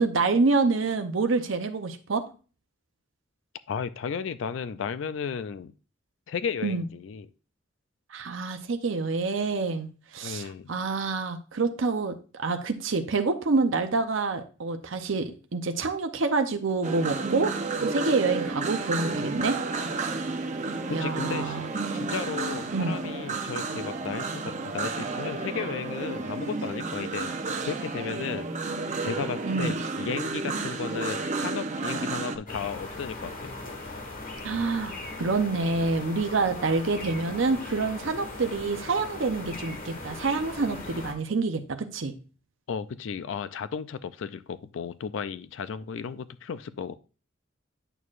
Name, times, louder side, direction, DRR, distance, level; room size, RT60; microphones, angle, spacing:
voice 1, 0.0-2.3 6.6-6.9 8.1-9.9 10.1-19.6 20.9-21.7 22.7-23.0 23.5-23.6 29.4-29.8 34.4-34.9 35.2-42.1, right 3 dB, 70° right, 6 dB, 0.7 m, -27 dB
voice 2, 3.7-5.7 6.3-7.3 10.2-10.7 20.9-21.6 21.9-27.3 27.7-28.5 29.0-33.5 42.7-47.0, left 6 dB, 70° left, 15 dB, 0.4 m, -34 dB
sound 1, 16.8-32.4, right 3 dB, 40° right, 0.8 m, -31 dB
sound 2, 32.5-41.1, left 2 dB, 45° left, 1.4 m, -39 dB
8.9 x 6.4 x 2.5 m, 0.35 s
head